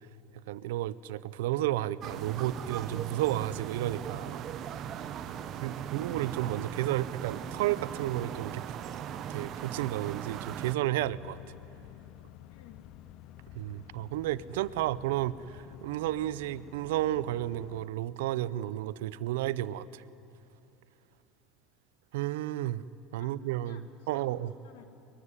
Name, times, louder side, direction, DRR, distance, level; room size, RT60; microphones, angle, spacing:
voice 1, 0.5-4.4 5.6-8.6 9.3-11.4 13.5-20.0 22.1-22.8 23.1-24.5, right 14 dB, 80° right, 17 dB, 0.6 m, -32 dB
sound 1, 2.0-10.8, right 9 dB, 50° right, 1.0 m, -39 dB
voice 2, 5.3-5.9 12.5-12.9 21.1-21.3 23.2-24.8, left 10 dB, 80° left, 6 dB, 1.9 m, -56 dB
sound 2, 11.0-17.9, left 13 dB, 60° left, 0.6 m, -51 dB
23.5 x 21.5 x 9.7 m, 2.8 s
hypercardioid pair, 80°, 0 cm